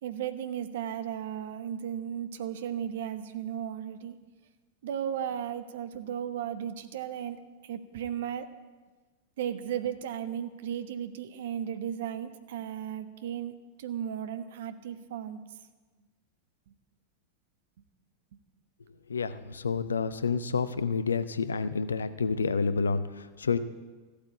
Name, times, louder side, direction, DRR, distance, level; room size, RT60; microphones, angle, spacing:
voice 1, 0.0-4.2 4.8-8.5 9.4-15.4, right 9 dB, 55° right, 10 dB, 1.0 m, -35 dB
voice 2, 19.1-23.6, left 5 dB, 70° left, 13 dB, 0.7 m, -29 dB
14.5 x 8.7 x 8.4 m, 1.3 s
figure-of-eight pair, 90°, 0 cm